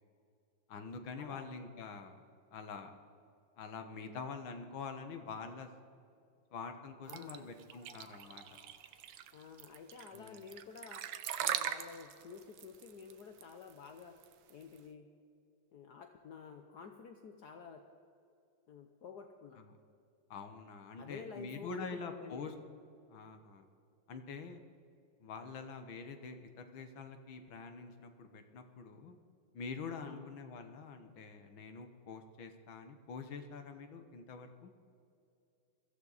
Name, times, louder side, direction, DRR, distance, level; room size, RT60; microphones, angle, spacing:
voice 1, 0.7-2.2 2.5-2.9 3.6-5.7 6.5-8.4 10.1-10.4 19.6-19.7 20.3-22.5 23.1-23.7 24.1-24.6 25.2-29.2 29.5-34.7, left 5 dB, 80° left, 7 dB, 2.0 m, -46 dB
voice 2, 7.1-7.5 9.3-11.1 11.4-14.2 14.5-15.1 15.7-17.8 18.7-19.6 21.0-22.5 30.0-30.3, left 6 dB, 60° left, 5 dB, 1.3 m, -50 dB
sound 1, 7.1-14.8, right 10 dB, 80° right, 1.6 m, -41 dB
sound 2, 7.3-9.2, right 1 dB, 25° right, 2.0 m, -62 dB
22.5 x 15.0 x 4.1 m, 2.5 s
omnidirectional pair, 2.1 m